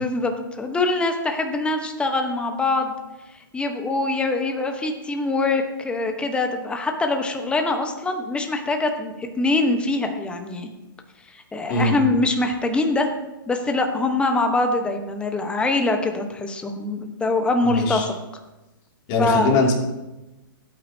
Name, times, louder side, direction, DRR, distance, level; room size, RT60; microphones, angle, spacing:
voice 1, 0.0-3.0 3.5-10.7 11.3-13.1 13.5-18.1 19.2-19.6, left 2 dB, 10° left, 4 dB, 1.1 m, -23 dB
voice 2, 11.7-12.0 17.6-18.1 19.1-19.7, left 2 dB, 35° left, -1 dB, 2.8 m, -21 dB
16.5 x 8.8 x 2.9 m, 1.0 s
hypercardioid pair, 135°, 12 cm